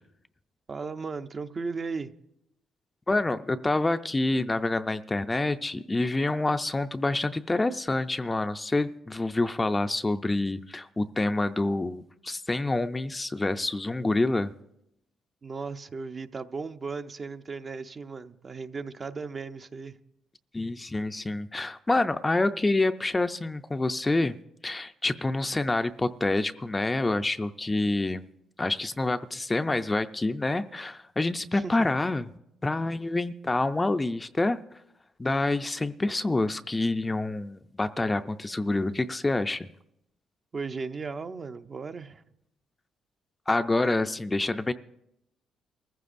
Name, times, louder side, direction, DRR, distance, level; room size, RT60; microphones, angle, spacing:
voice 1, 0.7-2.1 15.4-20.0 31.5-31.8 40.5-42.2, right 4 dB, 40° right, 0.6 m, -36 dB
voice 2, 3.1-14.5 20.5-24.4 24.6-28.2 28.6-32.3 32.6-34.6 35.2-39.7 43.5-44.7, left 2 dB, 20° left, 0.4 m, -27 dB
23.5 x 15.0 x 2.6 m
cardioid pair, 90°, 0 cm